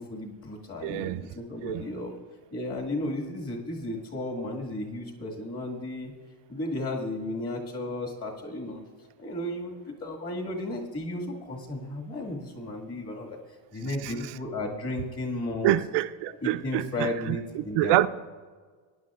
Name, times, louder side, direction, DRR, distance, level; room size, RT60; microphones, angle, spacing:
voice 1, 0.0-2.1 2.5-6.1 6.5-8.8 9.2-9.8 10.0-13.4 13.7-15.7 16.4-18.1, left 1 dB, 30° left, 2.1 m, -34 dB
voice 2, 0.8-1.2 1.6-1.8 13.8-14.3 15.6-18.1, right 15 dB, 70° right, 0.6 m, -27 dB
18.5 x 10.5 x 2.5 m
cardioid pair, 155°, 44 cm